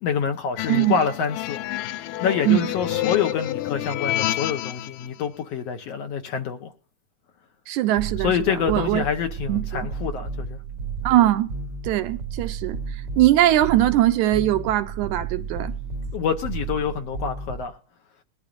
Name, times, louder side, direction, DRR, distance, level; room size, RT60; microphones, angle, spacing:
voice 1, 0.0-1.6 2.2-6.7 8.2-10.6 16.1-17.8, left 7 dB, 65° left, 1.7 m, -26 dB
sound 1, 0.6-5.1, left 14 dB, 90° left, 2.3 m, -29 dB
voice 2, 0.7-1.0 2.5-2.7 7.7-8.3 8.7-9.1 9.5-9.9 11.0-11.5 11.8-15.7, right 14 dB, 75° right, 2.0 m, -21 dB
sound 2, 7.9-17.6, right 5 dB, 60° right, 1.2 m, -33 dB
21.0 x 12.0 x 2.5 m
omnidirectional pair, 3.7 m